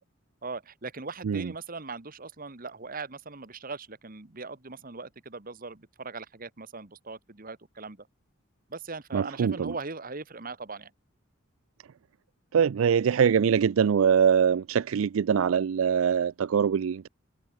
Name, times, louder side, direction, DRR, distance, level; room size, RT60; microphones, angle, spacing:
voice 1, 0.4-8.1 8.7-10.9, right 4 dB, 45° right, 1.6 m, -40 dB
voice 2, 9.1-9.7 12.5-17.1, right 7 dB, 75° right, 0.4 m, -23 dB
head